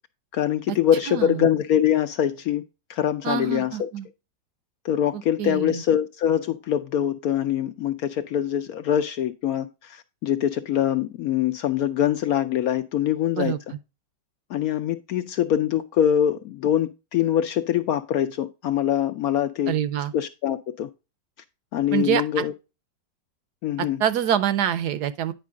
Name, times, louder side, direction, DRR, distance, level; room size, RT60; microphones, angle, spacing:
voice 1, 0.3-2.6 2.9-3.9 4.8-13.5 14.5-19.8 20.1-20.9 21.7-22.5 23.6-24.0, left 10 dB, 70° left, 0.9 m, -24 dB
voice 2, 1.1-1.5 3.2-4.1 5.1-5.8 13.4-13.6 19.7-20.1 21.9-22.4 23.8-25.3, right 10 dB, 70° right, 1.1 m, -26 dB
9.4 x 5.2 x 3.5 m
omnidirectional pair, 1.9 m